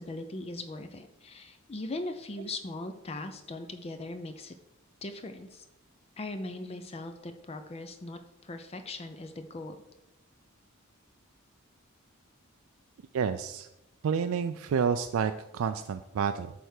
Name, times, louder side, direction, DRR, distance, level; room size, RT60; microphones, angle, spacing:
voice 1, 0.0-4.5 5.0-5.7 6.2-9.8, left 2 dB, 30° left, 8 dB, 0.5 m, -39 dB
voice 2, 13.1-13.7 14.0-16.5, right 6 dB, 80° right, 9 dB, 0.3 m, -29 dB
8.6 x 3.4 x 6.4 m, 0.92 s
head